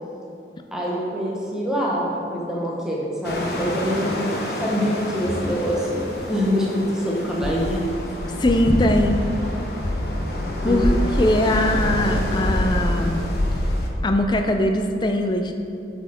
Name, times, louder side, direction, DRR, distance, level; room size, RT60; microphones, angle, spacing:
voice 1, 0.7-6.0 6.3-7.8 10.6-10.9, equal, 5° right, -5 dB, 1.0 m, -25 dB
sound 1, 3.2-13.9, left 1 dB, 60° left, 0.8 m, -26 dB
voice 2, 8.4-9.2 10.6-13.3 14.0-15.5, left 1 dB, 25° left, 5 dB, 0.4 m, -21 dB
7.9 x 4.2 x 4.4 m, 2.6 s
head